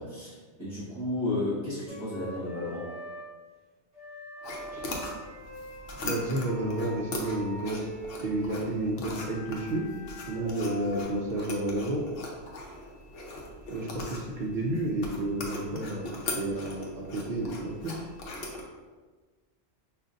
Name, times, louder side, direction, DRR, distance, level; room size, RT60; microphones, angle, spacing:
voice 1, 0.0-2.9 10.3-10.6, left 2 dB, 25° right, -12 dB, 1.4 m, -33 dB
Wind instrument woodwind instrument, 1.9-3.3 3.9-8.5 9.1-11.0, left 1 dB, 5° right, 1.2 m, -43 dB
sound 1, 4.4-18.6, left 2 dB, 60° left, 0.8 m, -40 dB
voice 2, 6.0-7.9 8.2-9.9 10.3-12.0 13.7-18.0, right 1 dB, 60° right, -2 dB, 0.5 m, -31 dB
5.0 x 2.5 x 2.6 m, 1.4 s
omnidirectional pair, 1.2 m